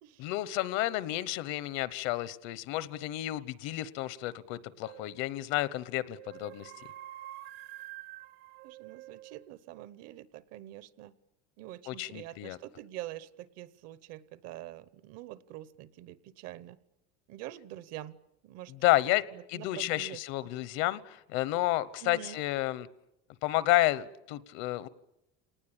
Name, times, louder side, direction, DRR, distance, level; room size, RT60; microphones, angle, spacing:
voice 1, 0.2-6.7 11.9-12.6 18.7-19.2 19.5-22.9 23.4-24.9, left 16 dB, 65° left, 17 dB, 1.1 m, -31 dB
sound 1, 4.8-5.3 6.0-9.5, right 15 dB, 75° right, 1.4 m, -47 dB
voice 2, 8.6-11.1 11.6-16.8 17.3-18.2 18.4-18.7 19.1-20.2 22.0-22.4, right 14 dB, 55° right, 18 dB, 0.9 m, -45 dB
27.0 x 19.0 x 8.8 m, 0.88 s
cardioid pair, 160°, 30 cm